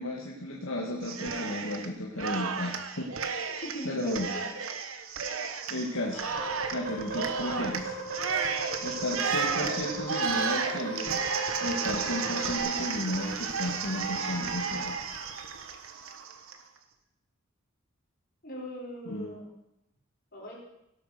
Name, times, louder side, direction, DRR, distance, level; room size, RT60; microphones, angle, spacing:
voice 1, 0.0-3.1 3.8-4.3 5.7-6.2 6.7-7.9 8.8-11.3 11.6-15.0 19.1-19.3, left 1 dB, 70° left, -2 dB, 2.0 m, -33 dB
Cheering, 1.0-1.9 2.2-16.6, right 5 dB, 85° right, 1.4 m, -33 dB
voice 2, 3.5-4.4 18.4-19.5 20.3-20.6, equal, 45° left, -3 dB, 5.3 m, -40 dB
sound 1, 6.3-12.6, right 3 dB, 45° right, 3.3 m, -37 dB
17.0 x 8.5 x 6.8 m, 0.84 s
head